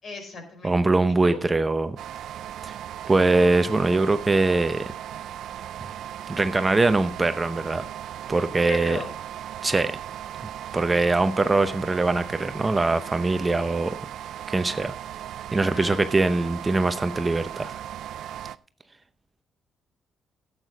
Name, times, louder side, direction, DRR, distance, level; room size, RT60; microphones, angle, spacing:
voice 1, 0.0-0.8 1.2-1.4 8.5-9.1 15.6-16.0, left 3 dB, 50° left, 4 dB, 4.6 m, -36 dB
voice 2, 0.6-2.0 2.6-2.7 3.1-4.9 6.3-7.9 8.3-9.0 9.6-10.0 10.7-14.0 14.5-14.9 15.5-17.7, right 2 dB, 20° right, 11 dB, 0.7 m, -22 dB
sound 1, 2.0-18.6, right 11 dB, 75° right, 0.4 m, -37 dB
11.5 x 8.3 x 5.0 m, 0.43 s
cardioid pair, 90°, 0 cm